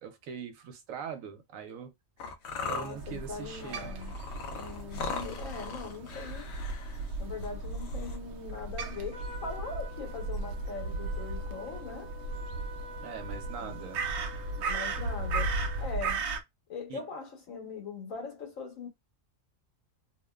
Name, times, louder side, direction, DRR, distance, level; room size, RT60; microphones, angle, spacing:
voice 1, 0.0-1.9 2.6-3.9 13.0-14.2 16.9-17.0, right 7 dB, 90° right, 1.1 m, -42 dB
sound 1, 2.2-8.2, left 4 dB, 65° left, 0.9 m, -40 dB
voice 2, 2.5-4.1 4.5-6.5 7.2-12.1 13.6-14.0 14.6-16.3 16.7-18.9, left 4 dB, 85° left, 1.4 m, -41 dB
Crow, 2.9-16.4, right 3 dB, 65° right, 0.8 m, -36 dB
Trumpet, 9.1-16.0, equal, 40° left, 0.6 m, -47 dB
2.8 x 2.2 x 2.2 m
omnidirectional pair, 1.4 m